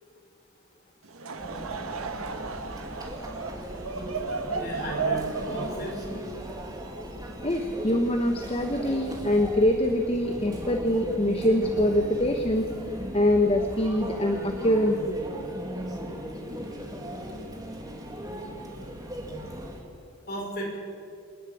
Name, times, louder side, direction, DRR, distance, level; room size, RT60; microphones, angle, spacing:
Laughter / Crowd, 1.0-7.5, right 5 dB, 75° right, 1.5 m, -34 dB
Conversation / Chatter / Crowd, 1.4-19.8, equal, 15° right, 2.4 m, -37 dB
voice 1, 4.5-6.0 19.4-19.5 20.3-20.8, equal, 45° left, -1 dB, 6.0 m, -35 dB
voice 2, 7.4-12.7 13.1-15.2, left 1 dB, 25° left, 4 dB, 1.1 m, -24 dB
27.5 x 11.0 x 9.3 m, 2.4 s
head